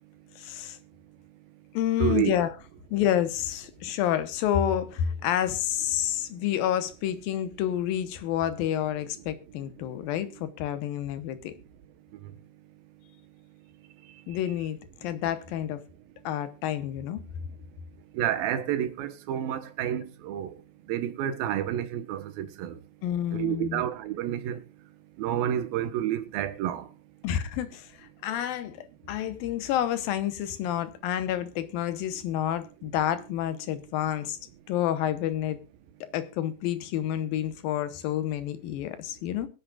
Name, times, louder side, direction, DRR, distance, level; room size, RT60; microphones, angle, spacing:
voice 1, 0.4-0.8 1.7-2.5 2.9-11.5 14.3-15.8 16.2-17.2 23.0-23.8 27.2-34.4 34.7-35.6 36.1-39.5, left 11 dB, 85° left, 2.8 m, -29 dB
voice 2, 2.0-2.3 12.2-12.3 18.1-20.6 20.9-22.8 23.3-24.6 25.2-26.9, right 11 dB, 90° right, 2.9 m, -29 dB
23.0 x 8.0 x 2.4 m
omnidirectional pair, 4.1 m